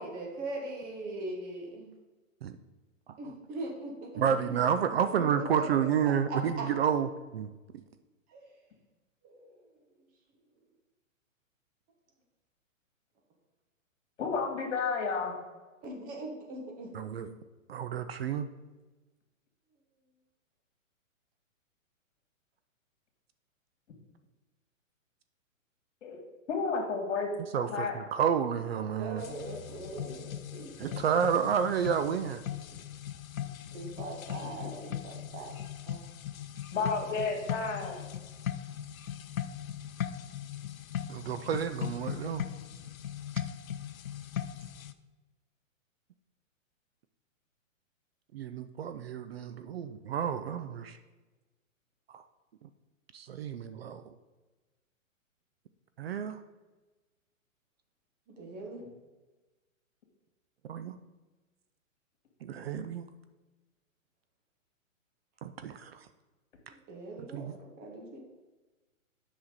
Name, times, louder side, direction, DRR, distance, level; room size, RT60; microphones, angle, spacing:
voice 1, 0.0-1.9 3.2-4.7 5.1-5.9 6.3-6.7 8.3-8.5 9.2-9.6 15.8-16.9 17.2-17.3 29.0-31.4 33.7-35.5 35.8-36.1 58.3-58.9 66.7-68.2, right 2 dB, 20° right, 0 dB, 1.1 m, -41 dB
voice 2, 4.1-7.5 16.9-17.3 17.7-18.5 27.5-29.2 30.8-32.4 41.1-42.4 48.3-51.0 52.1-52.2 53.1-54.0 56.0-56.4 60.6-61.0 62.4-63.1 65.4-66.1 67.2-67.5, right 8 dB, 50° right, 10 dB, 0.5 m, -30 dB
voice 3, 14.2-15.3 26.0-26.2 26.5-27.3 27.6-28.0 34.6-34.7 36.7-38.0, left 4 dB, 60° left, 1 dB, 2.3 m, -31 dB
sound 1, 29.2-44.9, left 10 dB, 85° left, 0.6 m, -39 dB
7.9 x 5.8 x 4.0 m, 1.2 s
hypercardioid pair, 135°, 40 cm